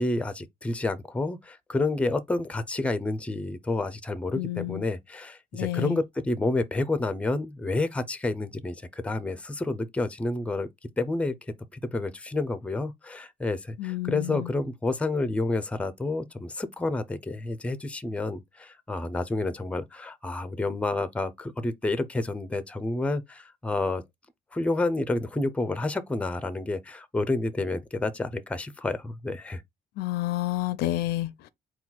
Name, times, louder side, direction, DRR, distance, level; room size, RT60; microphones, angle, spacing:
voice 1, 0.0-10.7 11.0-11.3 11.7-24.0 24.5-29.6, left 2 dB, 5° left, 0.5 m, -29 dB
voice 2, 4.4-4.8 5.5-6.0 13.8-14.5 30.0-31.5, left 16 dB, 75° left, 0.4 m, -30 dB
4.3 x 2.3 x 3.8 m
cardioid pair, 110°, 17 cm